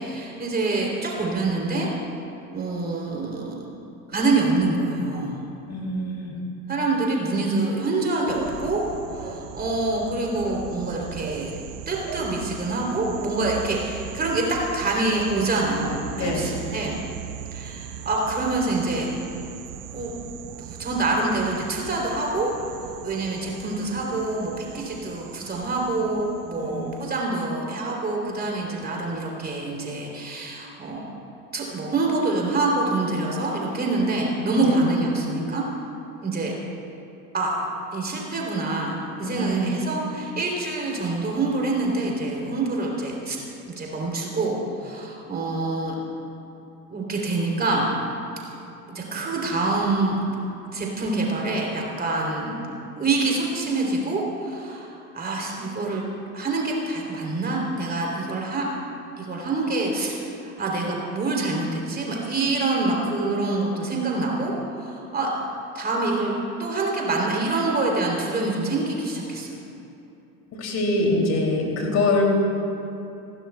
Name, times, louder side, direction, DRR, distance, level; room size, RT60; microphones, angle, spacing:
voice 1, 0.0-1.9 2.5-3.7 4.1-5.4 6.7-8.8 9.1-11.6 11.9-17.0 17.5-19.1 19.9-20.1 20.6-22.5 23.0-31.0 31.5-35.6 36.2-36.5 37.3-37.6 37.9-43.4 43.8-46.0 46.9-47.9 48.9-50.2 50.7-52.5 53.0-56.0 56.3-58.6 59.2-65.3 65.7-66.3 66.6-69.5, right 2 dB, 20° right, -1 dB, 3.1 m, -26 dB
voice 2, 5.7-6.4 16.1-16.5 26.5-26.9 34.6-34.8 39.2-39.7 70.5-72.2, left 2 dB, 35° left, 1 dB, 2.8 m, -24 dB
sound 1, 8.3-27.2, right 9 dB, 50° right, 1.0 m, -39 dB
27.5 x 12.5 x 2.3 m, 2.8 s
figure-of-eight pair, 75°, 47 cm